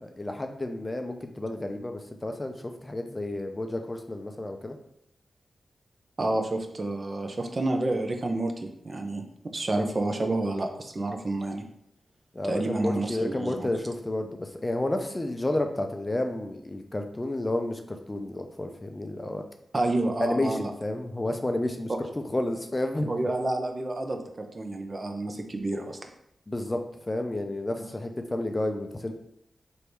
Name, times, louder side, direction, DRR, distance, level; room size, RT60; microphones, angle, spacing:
voice 1, 0.0-4.8 12.3-19.4 20.2-21.9 22.3-23.2 26.5-29.1, left 1 dB, 25° left, 5 dB, 0.4 m, -31 dB
voice 2, 6.2-11.6 12.4-13.7 19.7-20.7 21.9-22.0 23.1-26.0, right 2 dB, 45° right, 4 dB, 0.6 m, -29 dB
3.4 x 2.6 x 4.5 m, 0.76 s
cardioid pair, 65°, 0 cm